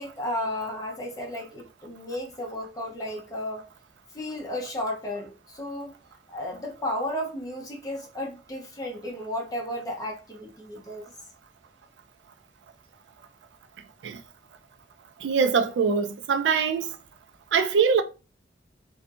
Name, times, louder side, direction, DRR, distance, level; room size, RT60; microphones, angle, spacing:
voice 1, 0.0-3.6 4.1-5.9 6.3-11.1, left 1 dB, 20° left, 0.7 m, -33 dB
voice 2, 15.2-17.0 17.5-18.0, right 6 dB, 80° right, 0.3 m, -23 dB
2.6 x 2.6 x 2.3 m
head